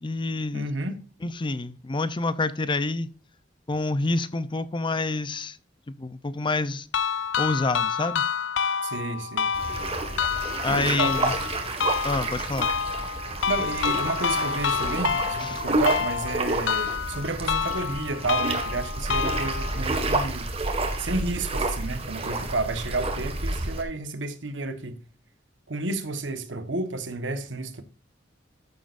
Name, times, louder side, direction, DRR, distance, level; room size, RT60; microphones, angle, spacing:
voice 1, 0.0-0.7 1.2-3.1 3.7-5.6 6.0-6.9 7.4-8.2 10.6-11.4 12.0-12.7 15.4-15.6, left 3 dB, 25° left, 0.6 m, -27 dB
voice 2, 0.5-1.0 8.8-9.5 10.7-11.1 13.5-20.5 21.0-25.0 25.7-27.8, right 3 dB, 85° right, 1.4 m, -31 dB
sound 1, 6.9-19.9, left 6 dB, 85° left, 0.6 m, -28 dB
sound 2, 9.5-23.8, right 2 dB, 35° right, 1.8 m, -30 dB
14.0 x 7.3 x 2.6 m
head